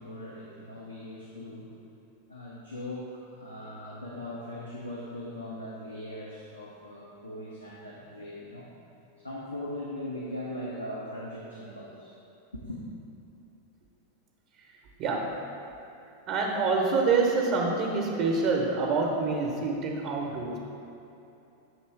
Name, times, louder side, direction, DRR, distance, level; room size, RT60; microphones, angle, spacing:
voice 1, 0.0-1.8 2.3-8.7 9.2-12.1 12.5-12.8, left 1 dB, 85° left, -5 dB, 0.6 m, -40 dB
voice 2, 15.0-15.4 16.3-20.6, right 4 dB, 40° right, 0 dB, 0.7 m, -26 dB
7.4 x 3.0 x 4.5 m, 2.9 s
figure-of-eight pair, 90°, 0 cm